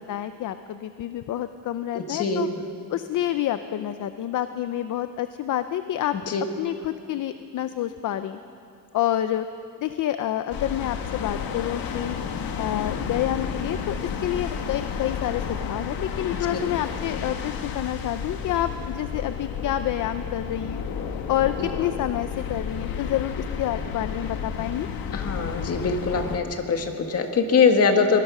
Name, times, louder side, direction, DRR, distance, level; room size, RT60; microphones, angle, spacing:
voice 1, 0.0-2.5 2.9-6.2 6.6-8.4 8.9-9.5 9.8-12.2 12.6-20.9 21.3-24.9, left 12 dB, 65° left, 10 dB, 0.7 m, -28 dB
voice 2, 1.9-2.4 6.3-6.4 16.5-16.6 25.1-28.2, left 5 dB, 45° left, 5 dB, 1.8 m, -22 dB
sound 1, 10.5-26.4, left 6 dB, 85° left, 1.5 m, -32 dB
23.5 x 19.5 x 6.2 m, 2.5 s
cardioid pair, 170°, 34 cm